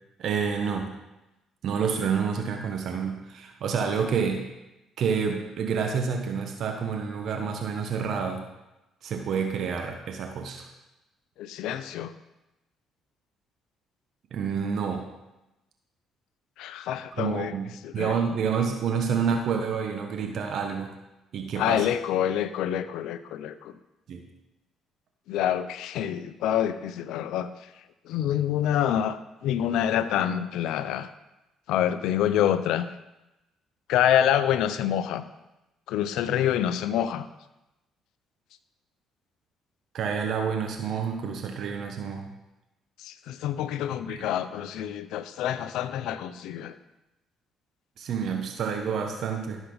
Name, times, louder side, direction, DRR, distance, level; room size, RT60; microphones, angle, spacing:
voice 1, 0.2-0.9 1.6-4.4 5.0-8.4 9.0-10.7 14.3-15.0 17.2-20.9 21.3-21.9 24.1-24.2 39.9-42.3 44.1-44.3 48.0-49.6, right 6 dB, 65° right, 3 dB, 1.3 m, -28 dB
voice 2, 11.4-12.1 16.6-17.5 17.8-18.1 21.6-23.7 25.3-27.5 28.0-31.1 31.7-32.9 33.9-35.2 35.9-37.3 43.0-46.7, left 10 dB, 75° left, 13 dB, 0.6 m, -27 dB
13.5 x 7.2 x 4.0 m, 0.96 s
supercardioid pair, 70°, 0 cm